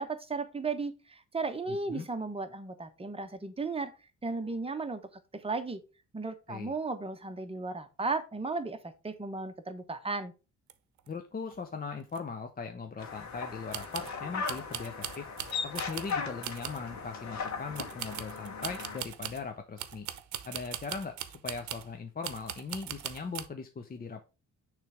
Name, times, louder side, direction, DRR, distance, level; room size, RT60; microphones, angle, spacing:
voice 1, 0.0-3.9 4.2-5.0 5.3-5.8 6.1-10.3, right 3 dB, 20° right, 7 dB, 1.0 m, -35 dB
voice 2, 1.7-2.0 6.5-6.7 11.1-15.3 15.6-20.1 20.4-24.2, left 5 dB, 30° left, 6 dB, 0.7 m, -39 dB
sound 1, 10.7-10.8 11.0-11.1 11.5-11.6 12.1-12.2 13.7-14.2 14.5-16.2 16.4-16.9 17.8-19.5 19.8-21.9 22.2-23.5, right 11 dB, 70° right, 0.8 m, -40 dB
sound 2, 13.0-19.0, left 5 dB, 65° left, 1.6 m, -38 dB
6.5 x 3.3 x 4.8 m, 0.31 s
cardioid pair, 90°, 30 cm